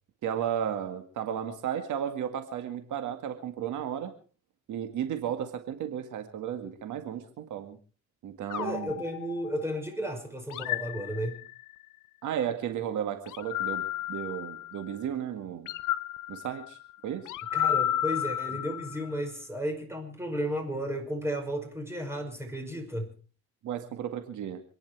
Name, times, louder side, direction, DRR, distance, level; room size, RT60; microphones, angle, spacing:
voice 1, 0.2-4.1 4.7-7.8 8.2-8.9 12.2-15.7 16.3-16.8 17.0-17.3 23.6-24.6, right 9 dB, 80° right, 8 dB, 2.0 m, -34 dB
sound 1, 8.5-9.9 10.5-11.8 13.3-15.0 15.7-19.2, left 11 dB, 85° left, 0.8 m, -33 dB
voice 2, 8.6-11.4 17.5-23.1, equal, 10° right, 4 dB, 5.6 m, -33 dB
27.0 x 10.5 x 4.7 m, 0.40 s
cardioid pair, 90°, 30 cm